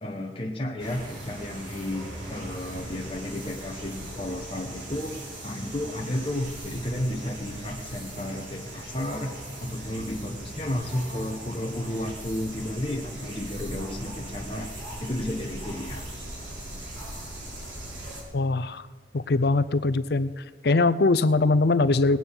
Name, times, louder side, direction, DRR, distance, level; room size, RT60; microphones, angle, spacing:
voice 1, 0.0-9.3 9.6-14.7 15.0-16.1, left 1 dB, 30° left, -1 dB, 1.1 m, -32 dB
sound 1, 0.8-18.2, right 1 dB, 85° right, 4.7 m, -39 dB
voice 2, 18.3-18.9 19.1-20.3 20.6-22.2, left 3 dB, 60° left, 14 dB, 0.6 m, -22 dB
19.5 x 9.3 x 5.6 m, 1.3 s
head